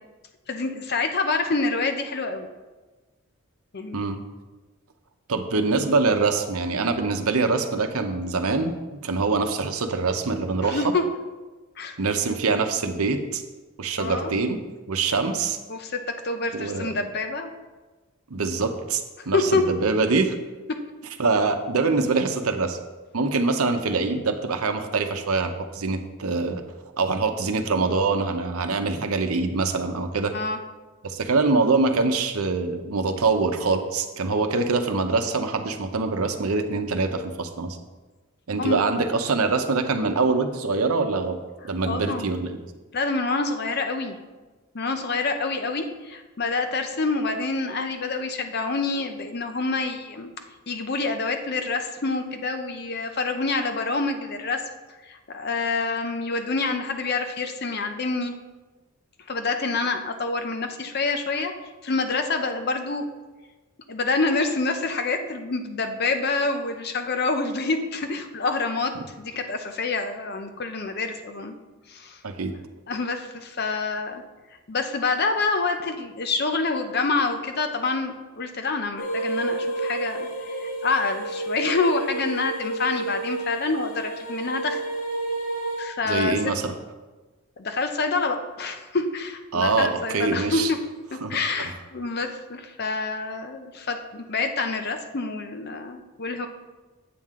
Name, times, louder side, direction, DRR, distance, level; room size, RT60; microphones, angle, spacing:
voice 1, 0.5-2.5 3.7-4.0 10.6-11.0 11.8-12.0 14.0-14.3 15.7-17.5 19.2-19.6 30.3-30.6 38.6-38.8 41.8-42.3 42.9-44.2 44.7-50.3 50.7-54.6 55.1-58.3 59.3-61.5 61.8-63.0 63.9-71.5 71.9-72.2 72.9-74.2 74.7-84.8 85.8-86.3 87.6-90.8 91.1-96.5, left 3 dB, 45° left, 6 dB, 0.7 m, -27 dB
voice 2, 5.3-10.9 12.0-13.4 13.8-14.6 14.9-15.6 16.5-16.9 18.3-20.4 21.2-22.8 23.1-26.6 27.0-30.3 31.0-37.8 38.5-41.4 41.7-42.6 72.2-72.5 86.0-86.7 89.5-90.7 91.2-91.7, right 3 dB, 80° right, 6 dB, 0.8 m, -24 dB
sound 1, 79.0-85.8, right 2 dB, 75° left, 1.3 m, -30 dB
8.5 x 7.4 x 3.7 m, 1.2 s
head